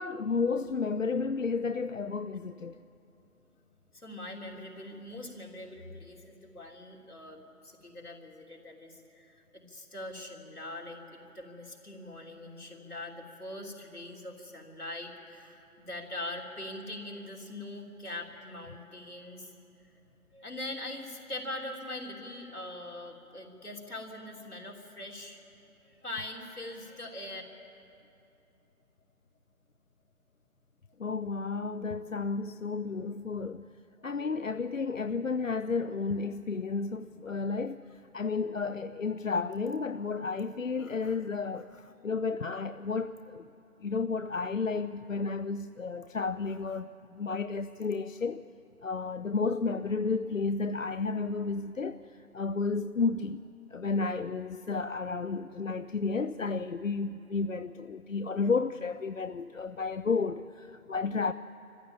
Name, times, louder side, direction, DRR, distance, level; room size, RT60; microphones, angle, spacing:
voice 1, 0.0-2.7 31.0-33.6 34.0-43.5 43.8-48.4 48.8-52.0 52.3-53.4 53.7-61.3, left 4 dB, 60° left, 0.5 m, -32 dB
voice 2, 3.9-19.5 20.3-25.4 25.8-27.4, left 1 dB, 75° left, 3.4 m, -42 dB
23.5 x 15.0 x 8.8 m
figure-of-eight pair, 160°, 45 cm